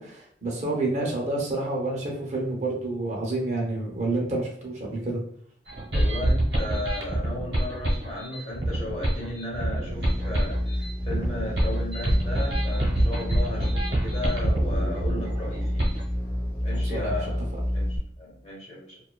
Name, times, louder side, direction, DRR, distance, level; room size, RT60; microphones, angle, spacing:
voice 1, 0.0-5.2 16.9-17.1, right 2 dB, 40° right, -1 dB, 0.6 m, -29 dB
sound 1, 5.7-16.0, right 1 dB, 65° right, 0.9 m, -26 dB
voice 2, 5.9-15.9 16.6-17.4 17.7-19.0, left 1 dB, 40° left, -4 dB, 0.9 m, -35 dB
sound 2, 9.9-18.0, left 1 dB, 10° left, 0.5 m, -29 dB
2.6 x 2.2 x 2.2 m, 0.63 s
head